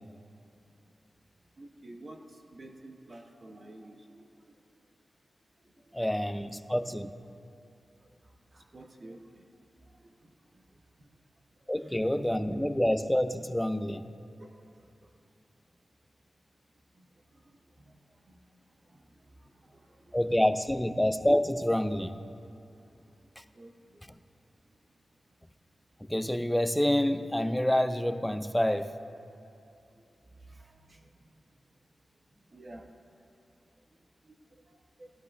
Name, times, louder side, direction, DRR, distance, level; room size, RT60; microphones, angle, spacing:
voice 1, 1.6-4.5 8.5-9.4 9.9-10.2 11.0-11.1 11.8-12.1 14.4-14.5 15.0-15.1 17.0-17.1 17.3-17.4 17.8-18.0 18.3-18.4 18.9-20.3 23.5-24.1 30.5-31.1 32.5-32.9 34.2-34.4 34.7-35.1, right 1 dB, 45° right, 3 dB, 0.7 m, -51 dB
voice 2, 5.9-7.1 11.7-14.0 20.1-22.2 23.4-23.5 26.0-29.0, left 1 dB, 5° left, 10 dB, 0.4 m, -27 dB
15.0 x 12.5 x 2.4 m, 2.6 s
wide cardioid pair, 90°, 0 cm